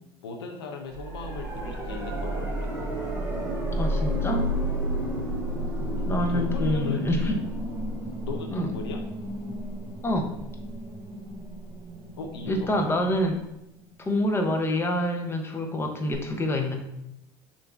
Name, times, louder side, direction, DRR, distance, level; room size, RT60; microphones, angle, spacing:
voice 1, 0.2-2.7 5.8-7.6 8.2-9.0 12.2-12.9, left 3 dB, 90° left, 2 dB, 0.5 m, -38 dB
sound 1, 0.9-13.8 16.1-16.2, equal, 15° right, 1.3 m, -31 dB
voice 2, 3.8-4.5 6.1-7.4 8.5-8.7 10.0-10.3 12.4-13.4 14.0-16.8, left 1 dB, 20° left, 3 dB, 0.7 m, -26 dB
6.7 x 2.6 x 2.4 m, 0.82 s
hypercardioid pair, 80°, 13 cm